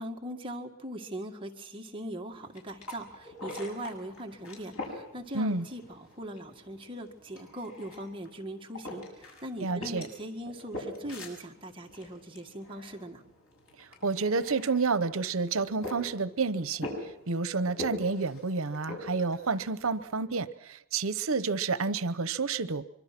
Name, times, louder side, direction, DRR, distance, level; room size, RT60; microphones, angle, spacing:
voice 1, 0.0-13.2, right 1 dB, 25° right, 2 dB, 1.8 m, -40 dB
sound 1, 2.3-20.2, left 1 dB, 85° left, 6.9 m, -44 dB
voice 2, 5.3-5.7 9.6-10.1 13.8-16.9 17.3-22.8, right 4 dB, 80° right, 15 dB, 0.9 m, -29 dB
24.5 x 24.0 x 6.0 m, 0.85 s
head